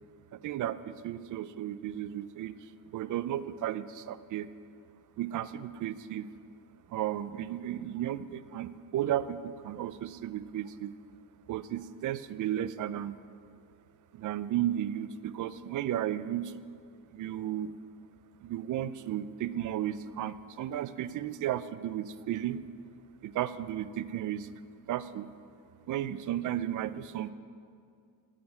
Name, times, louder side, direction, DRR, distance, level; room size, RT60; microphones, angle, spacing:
voice 1, 0.3-4.5 5.2-6.3 6.9-10.9 11.5-13.2 14.1-16.5 17.1-17.7 18.4-22.6 23.2-24.5 24.9-25.3 25.9-27.3, right 11 dB, 45° right, 15 dB, 0.5 m, -34 dB
12.0 x 5.0 x 8.3 m, 2.3 s
cardioid pair, 105°, 42 cm